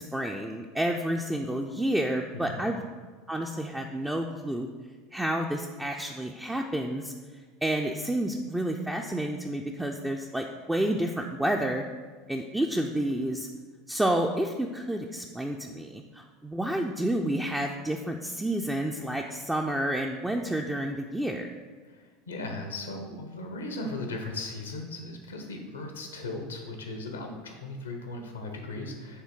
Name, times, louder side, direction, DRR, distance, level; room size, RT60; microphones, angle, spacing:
voice 1, 0.0-2.8 3.3-4.7 5.1-7.1 7.6-11.8 12.3-13.5 13.9-21.5, right 1 dB, 10° right, 1 dB, 0.4 m, -30 dB
voice 2, 21.9-29.2, left 2 dB, 85° left, 3 dB, 0.8 m, -37 dB
6.6 x 3.2 x 4.6 m, 1.4 s
hypercardioid pair, 80°, 0 cm